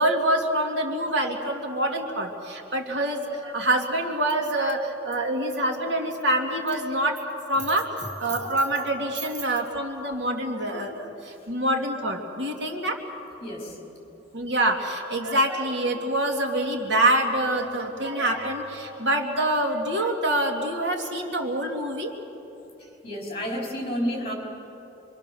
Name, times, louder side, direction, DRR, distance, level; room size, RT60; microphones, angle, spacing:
voice 1, 0.0-13.0 14.3-22.1, right 1 dB, 75° right, 2 dB, 2.5 m, -26 dB
voice 2, 13.4-13.7 23.0-24.3, equal, 30° left, -1 dB, 4.8 m, -30 dB
26.0 x 23.5 x 7.0 m, 3.0 s
head